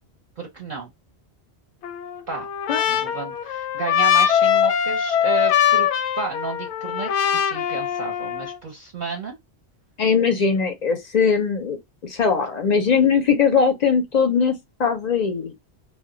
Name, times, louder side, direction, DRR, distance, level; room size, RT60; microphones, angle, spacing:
voice 1, 0.4-0.9 2.3-2.5 2.9-5.9 6.2-9.4, right 4 dB, 50° right, 0.7 m, -32 dB
Trumpet, 1.8-8.6, left 9 dB, 85° left, 0.9 m, -22 dB
voice 2, 10.0-15.6, left 6 dB, 55° left, 0.5 m, -20 dB
2.2 x 2.1 x 3.7 m
omnidirectional pair, 1.1 m